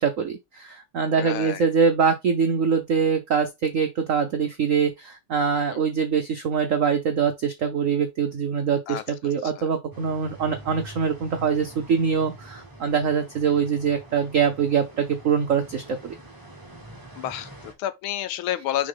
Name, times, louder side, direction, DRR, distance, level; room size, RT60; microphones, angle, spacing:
voice 1, 0.0-16.1, right 6 dB, 85° right, 0.7 m, -23 dB
voice 2, 1.2-1.7 5.7-5.8 8.9-9.0 9.6-9.7 17.2-18.9, left 12 dB, 80° left, 1.5 m, -30 dB
sound 1, 9.9-17.7, right 1 dB, 10° right, 1.3 m, -45 dB
6.5 x 3.8 x 3.9 m
omnidirectional pair, 2.4 m